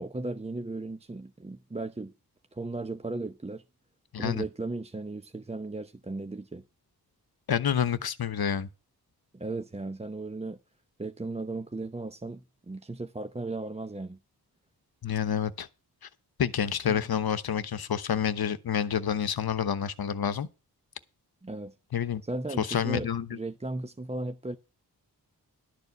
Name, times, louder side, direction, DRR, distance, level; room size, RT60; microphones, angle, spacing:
voice 1, 0.0-2.1 2.5-3.6 4.2-6.6 9.3-10.6 11.0-14.2 16.9-17.0 21.4-21.7 22.2-24.6, right 2 dB, 15° right, 0.7 m, -36 dB
voice 2, 4.1-4.4 7.5-8.7 15.0-15.7 16.4-20.5 21.9-22.2 22.6-23.4, left 8 dB, 65° left, 1.0 m, -28 dB
12.0 x 4.6 x 8.1 m
cardioid pair, 55°, 40 cm